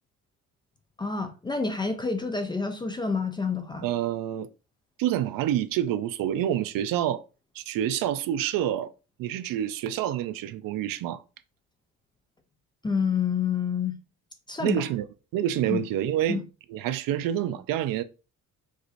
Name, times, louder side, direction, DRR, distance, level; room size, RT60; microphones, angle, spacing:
voice 1, 1.0-3.9 12.8-14.0 14.5-14.9 15.6-15.8 16.3-16.4, left 5 dB, 15° left, 0.3 m, -28 dB
voice 2, 3.8-4.5 5.0-7.2 7.6-8.9 9.2-11.2 14.6-15.0 15.3-16.4 16.7-18.0, right 11 dB, 70° right, 0.5 m, -27 dB
4.8 x 2.5 x 4.0 m
cardioid pair, 170°, 35 cm